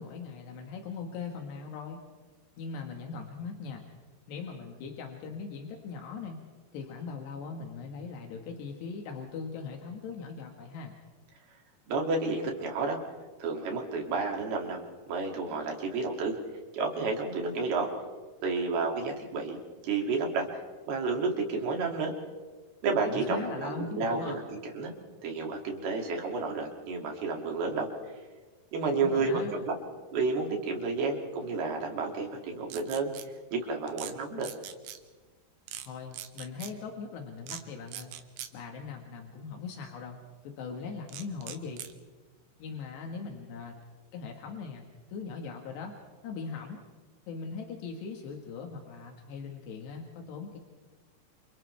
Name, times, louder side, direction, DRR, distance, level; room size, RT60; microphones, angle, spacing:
voice 1, 0.0-2.0 2.6-3.8 4.3-6.4 6.7-10.9 23.1-24.4 28.9-29.5 35.8-38.1 38.5-40.2 40.4-41.8 42.6-43.8 44.1-44.9 45.1-46.0 46.2-46.8 47.3-50.6, left 5 dB, 85° left, 2 dB, 3.9 m, -40 dB
voice 2, 11.9-13.0 13.4-14.8 15.1-16.4 16.7-17.9 18.4-20.5 20.9-22.1 22.8-24.4 24.7-24.9 25.2-27.9 28.7-29.7 30.1-33.1 33.5-34.5, right 4 dB, 70° right, 1 dB, 4.6 m, -31 dB
sound 1, 32.7-33.2 33.9-34.1 34.4-35.0 35.7-35.9 36.1-36.7 37.5-37.6 37.9-38.5 41.1-41.9, right 11 dB, 90° right, 3.2 m, -41 dB
29.0 x 28.5 x 3.4 m, 1.3 s
omnidirectional pair, 4.8 m